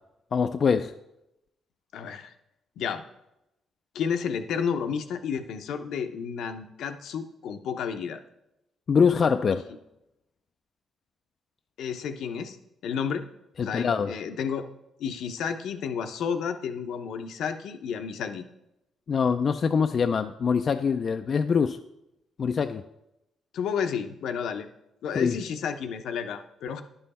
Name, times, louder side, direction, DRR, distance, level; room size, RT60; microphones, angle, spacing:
voice 1, 0.3-0.9 8.9-9.6 13.6-14.1 19.1-21.8 22.4-22.8 25.2-25.4, left 6 dB, 50° left, 7 dB, 0.4 m, -24 dB
voice 2, 1.9-2.3 2.8-3.0 3.9-8.2 11.8-12.6 12.8-13.3 13.6-14.6 15.0-18.4 23.5-24.7 25.0-26.8, left 7 dB, 75° left, 8 dB, 0.7 m, -31 dB
10.5 x 5.6 x 4.2 m, 0.86 s
cardioid pair, 90°, 0 cm